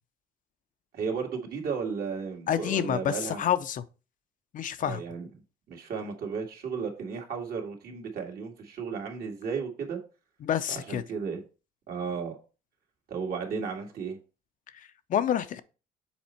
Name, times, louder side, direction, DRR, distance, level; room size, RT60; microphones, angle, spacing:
voice 1, 0.9-3.4 4.8-5.3 5.7-10.0 10.7-11.4 11.9-12.4 13.1-14.2, right 5 dB, 60° right, 2.0 m, -34 dB
voice 2, 2.5-3.8 4.5-5.0 10.4-11.0 14.7-15.6, left 10 dB, 50° left, 0.6 m, -28 dB
7.1 x 4.3 x 4.4 m
cardioid pair, 110°, 17 cm